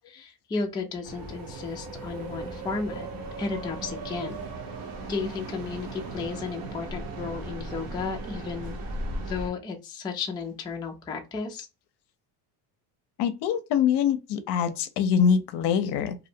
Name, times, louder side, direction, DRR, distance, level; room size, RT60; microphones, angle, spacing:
voice 1, 0.1-3.1 3.4-4.4 5.1-8.8 9.2-11.7, left 4 dB, 10° left, 0.3 m, -33 dB
sound 1, 1.0-9.5, right 2 dB, 45° right, 0.9 m, -37 dB
voice 2, 13.2-16.2, left 7 dB, 60° left, 0.6 m, -24 dB
2.6 x 2.0 x 2.7 m
cardioid pair, 110°, 47 cm